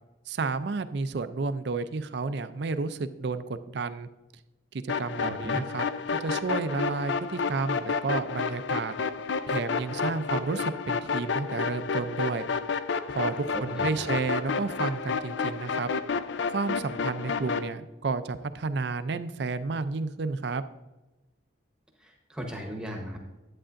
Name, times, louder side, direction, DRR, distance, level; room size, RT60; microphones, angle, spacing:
voice 1, 0.3-4.1 4.7-5.9 6.2-8.9 9.5-12.5 13.1-15.9 16.5-20.6, right 4 dB, 60° right, 12 dB, 0.4 m, -31 dB
sound 1, 4.9-17.7, left 5 dB, 65° left, 0.4 m, -30 dB
voice 2, 5.2-5.6 13.5-14.1 22.0-23.2, equal, 5° right, 1 dB, 1.0 m, -37 dB
11.0 x 8.6 x 2.5 m, 1.1 s
head